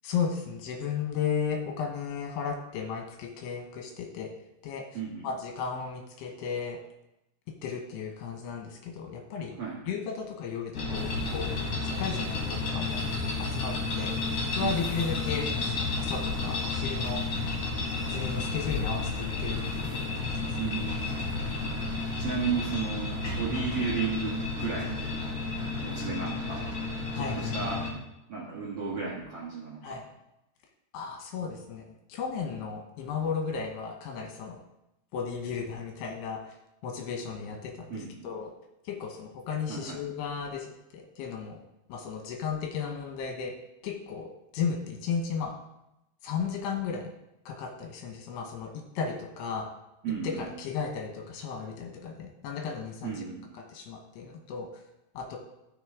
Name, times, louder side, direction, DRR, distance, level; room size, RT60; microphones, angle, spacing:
voice 1, 0.0-4.3 4.6-4.9 5.2-6.8 7.6-9.6 9.9-13.1 13.4-14.1 14.5-17.2 18.1-20.6 27.2-27.5 29.8-30.0 30.9-34.6 35.1-36.5 36.8-38.5 38.9-41.6 41.9-43.5 43.8-45.5 46.2-47.1 47.5-49.7 50.4-53.3 53.7-54.7 55.1-55.4, left 6 dB, 70° left, 2 dB, 2.9 m, -35 dB
voice 2, 4.9-5.3 9.6-9.8 14.6-14.9 20.6-21.1 22.2-25.2 25.8-26.7 27.1-27.9 28.3-30.0 37.9-38.2 39.7-40.0 50.0-50.5 53.0-53.5, right 5 dB, 75° right, -5 dB, 1.3 m, -34 dB
sound 1, 10.7-27.9, left 2 dB, 35° left, 3.4 m, -32 dB
sound 2, 10.9-25.9, left 5 dB, 90° left, 2.3 m, -39 dB
14.0 x 6.4 x 3.7 m, 0.91 s
omnidirectional pair, 5.2 m